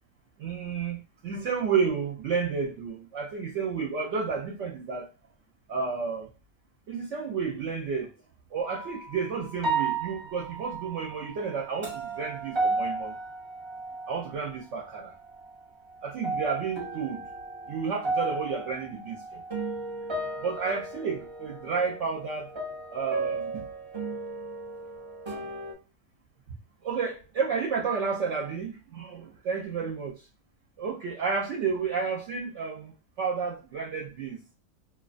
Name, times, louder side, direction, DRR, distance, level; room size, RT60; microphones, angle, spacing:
voice 1, 0.4-5.1 5.7-6.3 6.9-8.1 8.5-13.1 14.1-15.1 16.0-17.2 17.7-19.4 20.4-22.5 22.9-23.7 26.8-30.2 30.8-32.9 33.2-34.4, right 5 dB, 70° right, 0.8 m, -31 dB
sound 1, 8.6-9.0 9.6-14.5 14.8-15.6 16.0-25.7, right 3 dB, 40° right, 0.4 m, -34 dB
2.4 x 2.2 x 2.4 m
omnidirectional pair, 1.4 m